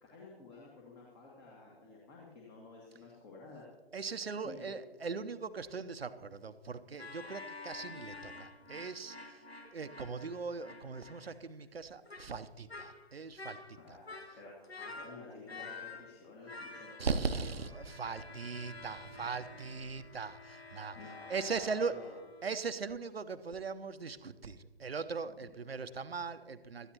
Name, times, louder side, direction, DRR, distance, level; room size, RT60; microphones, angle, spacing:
voice 1, 0.0-3.6 4.4-4.7 13.8-17.4 17.6-17.7 21.0-22.1 25.3-25.4, left 3 dB, 25° left, -2 dB, 1.9 m, -52 dB
voice 2, 3.9-14.0 17.0-21.0 21.3-22.0 22.4-26.9, right 4 dB, 75° right, 11 dB, 0.8 m, -39 dB
sound 1, 7.0-11.4 12.1-12.4 12.7-13.1 13.4-16.2 16.5-22.6, left 3 dB, 90° left, 1.3 m, -49 dB
sound 2, 17.6-21.1, right 4 dB, 40° right, 0.9 m, -58 dB
18.0 x 13.0 x 2.9 m, 1.4 s
figure-of-eight pair, 130°, 31 cm